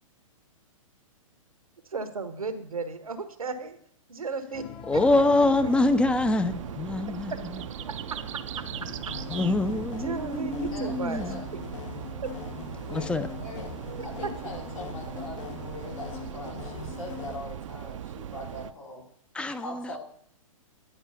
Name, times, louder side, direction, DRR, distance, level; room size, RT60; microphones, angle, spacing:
voice 1, 1.9-3.8 4.1-5.0 7.9-8.0 10.0-11.2 12.2-12.3 13.9-14.1 14.4-14.5, right 4 dB, 90° right, 10 dB, 1.0 m, -34 dB
sound 1, 4.5-10.3, left 7 dB, 30° left, 0.9 m, -45 dB
voice 2, 4.9-7.4 9.3-11.4 12.9-13.3 19.3-19.9, left 2 dB, 5° left, 11 dB, 0.4 m, -25 dB
sound 2, 4.9-18.7, right 10 dB, 65° right, 0.5 m, -39 dB
sound 3, 9.1-17.4, left 7 dB, 60° left, 0.9 m, -41 dB
voice 3, 10.7-11.5 12.8-13.7 14.0-19.0 19.4-20.0, left 1 dB, 75° left, -2 dB, 3.2 m, -42 dB
10.0 x 4.5 x 5.5 m, 0.66 s
hypercardioid pair, 120°, 18 cm